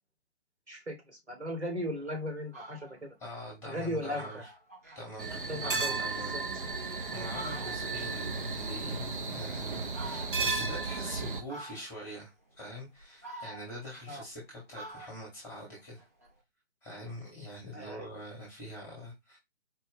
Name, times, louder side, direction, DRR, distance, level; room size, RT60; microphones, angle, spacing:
voice 1, 0.7-3.1 3.6-4.3 5.5-5.9 6.3-6.4 14.1-14.2 17.7-18.1, equal, 85° right, 2 dB, 2.3 m, -37 dB
Fowl, 1.9-2.0 2.4-3.0 3.5-3.6 3.8-3.9 4.1-5.0 5.5-8.1 8.4-9.5 9.9-10.6 11.5-12.1 12.7-14.4 14.7-16.3, right 1 dB, 15° right, 0.5 m, -47 dB
voice 2, 3.2-4.5 4.9-6.4 7.1-16.1 16.8-19.4, equal, 10° left, -2 dB, 1.1 m, -44 dB
sound 1, 5.2-11.4, right 4 dB, 50° right, 0.8 m, -34 dB
4.3 x 2.4 x 3.8 m, 0.20 s
figure-of-eight pair, 140°, 33 cm